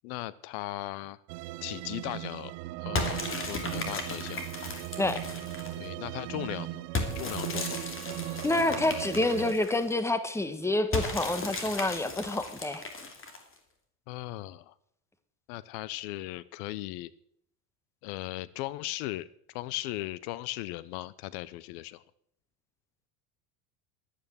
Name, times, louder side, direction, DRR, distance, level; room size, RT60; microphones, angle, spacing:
voice 1, 0.0-1.2 1.6-2.6 2.8-4.4 5.8-6.8 7.1-7.8 14.1-14.7 15.5-17.1 18.0-19.3 19.5-22.0, left 17 dB, 70° left, 19 dB, 0.7 m, -37 dB
sound 1, 1.3-9.5, right 17 dB, 75° right, 0.7 m, -38 dB
sound 2, 3.0-5.9 7.0-9.9 10.9-13.6, left 3 dB, 25° left, 2.7 m, -36 dB
voice 2, 8.4-12.8, left 2 dB, 5° left, 11 dB, 1.2 m, -28 dB
11.5 x 9.3 x 7.1 m, 0.71 s
supercardioid pair, 105°, 47 cm